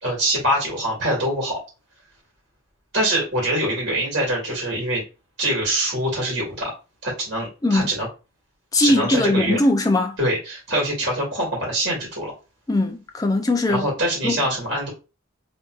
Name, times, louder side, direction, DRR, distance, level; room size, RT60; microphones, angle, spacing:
voice 1, 0.0-1.6 2.9-5.0 5.4-6.7 7.0-8.1 8.8-9.6 10.2-12.3 13.7-14.9, right 1 dB, 55° right, 2.0 m, -24 dB
voice 2, 8.7-10.2 12.7-13.9 14.2-14.4, left 2 dB, 15° left, 0.4 m, -20 dB
3.8 x 2.6 x 2.4 m
head